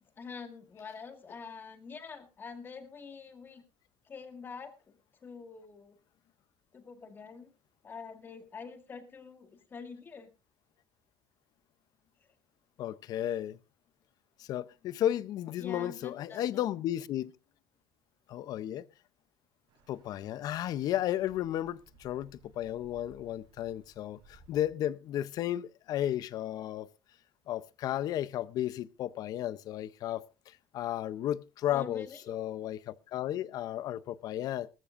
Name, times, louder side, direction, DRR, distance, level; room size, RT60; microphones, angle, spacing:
voice 1, 0.2-3.6 4.0-4.9 5.2-6.0 6.7-7.5 7.8-10.3 12.2-12.3 15.6-16.7 31.7-32.3, left 5 dB, 25° left, 1.9 m, -46 dB
voice 2, 12.8-13.6 14.4-17.3 18.3-18.8 19.9-26.9 27.5-34.7, left 12 dB, 50° left, 0.6 m, -34 dB
sound 1, 19.7-24.7, right 3 dB, 70° right, 6.4 m, -61 dB
19.0 x 14.0 x 2.5 m
cardioid pair, 165°, 8 cm